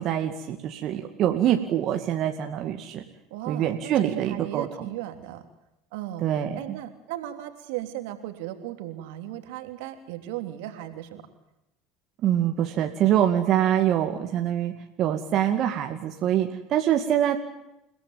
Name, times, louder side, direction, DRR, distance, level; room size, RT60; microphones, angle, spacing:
voice 1, 0.0-3.0 3.5-4.7 6.2-6.8 12.2-17.4, right 11 dB, 50° right, 4 dB, 2.3 m, -24 dB
voice 2, 3.3-5.4 5.9-6.3 6.5-11.2, right 13 dB, 70° right, 7 dB, 3.2 m, -36 dB
29.5 x 17.5 x 9.2 m, 0.90 s
hypercardioid pair, 75°, 0 cm